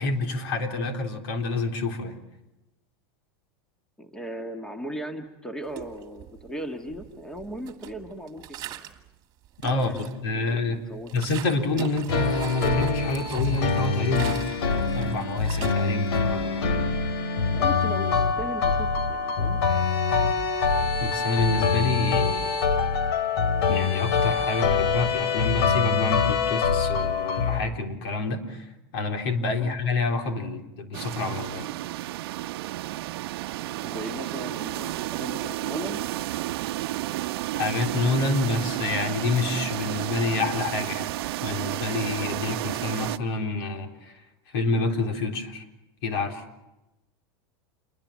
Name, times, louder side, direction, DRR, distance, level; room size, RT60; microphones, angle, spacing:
voice 1, 0.0-2.2 9.6-10.8 11.1-14.5 14.9-16.7 21.0-22.6 23.7-28.7 28.9-31.7 37.5-41.1 41.4-44.2 44.5-45.6 46.0-46.4, left 3 dB, 70° left, 4 dB, 3.9 m, -28 dB
voice 2, 4.0-8.5 9.6-11.1 17.5-19.6 29.6-29.7 33.8-36.0, equal, 5° left, 5 dB, 1.8 m, -37 dB
sound 1, 5.7-6.5 6.9-9.1 9.4-10.3 10.7-16.4, right 12 dB, 30° right, 2.1 m, -41 dB
sound 2, 12.1-27.6, left 5 dB, 85° left, 2.9 m, -24 dB
sound 3, 30.9-43.2, right 16 dB, 70° right, 0.8 m, -31 dB
28.0 x 22.0 x 7.5 m, 0.98 s
supercardioid pair, 150°, 13 cm